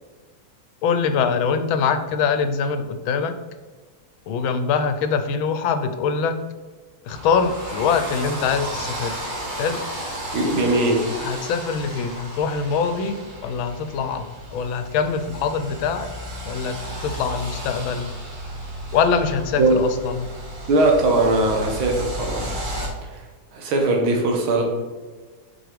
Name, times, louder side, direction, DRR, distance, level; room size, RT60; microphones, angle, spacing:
voice 1, 0.8-3.3 4.3-6.4 7.0-9.2 9.6-9.8 11.2-14.2 14.5-16.1 16.5-16.8 17.0-18.1 18.9-20.3, left 6 dB, 85° left, 9 dB, 1.4 m, -23 dB
sound 1, 7.1-22.9, right 1 dB, 35° right, 0.9 m, -33 dB
voice 2, 10.3-11.1 19.6-19.8 20.7-22.6 23.0-23.2 23.5-24.6, right 2 dB, 90° right, 1 dB, 2.0 m, -20 dB
6.3 x 4.7 x 3.4 m, 1.4 s
omnidirectional pair, 2.2 m